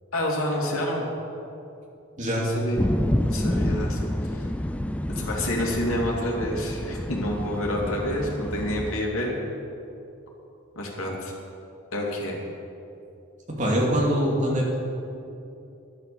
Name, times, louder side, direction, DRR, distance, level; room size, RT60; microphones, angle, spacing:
voice 1, 0.1-1.0 2.3-2.8 3.2-4.0 4.3-4.5 5.1-9.4 10.7-11.3 11.9-12.3, left 1 dB, 85° left, -2 dB, 2.7 m, -28 dB
voice 2, 2.2-2.5 13.5-14.8, equal, 35° right, -2 dB, 2.7 m, -23 dB
sound 1, 2.8-9.0, left 1 dB, 5° left, 0.4 m, -28 dB
11.0 x 10.5 x 7.0 m, 2.7 s
head